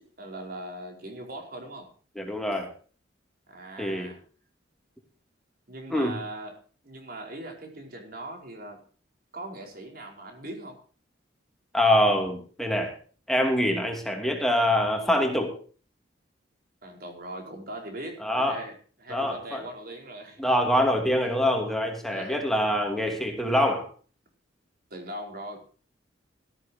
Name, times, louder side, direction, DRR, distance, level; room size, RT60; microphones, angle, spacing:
voice 1, 0.2-1.9 3.5-4.2 5.7-8.8 9.3-10.8 16.8-20.4 22.1-22.4 24.9-25.6, right 1 dB, 50° right, 3 dB, 4.8 m, -40 dB
voice 2, 2.2-2.7 3.8-4.1 5.9-6.2 11.7-12.9 13.3-15.5 18.2-18.6 19.1-19.6 20.4-23.9, left 1 dB, ahead, 2 dB, 2.8 m, -25 dB
18.0 x 14.0 x 2.9 m, 0.40 s
head